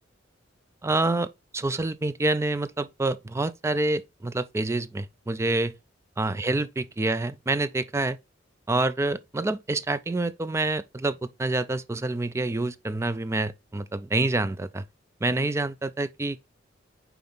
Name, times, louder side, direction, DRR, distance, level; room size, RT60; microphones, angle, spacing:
voice 1, 0.8-5.8 6.2-8.2 8.7-14.8 15.2-16.5, right 2 dB, 15° right, 0.3 m, -27 dB
5.3 x 4.6 x 3.8 m
head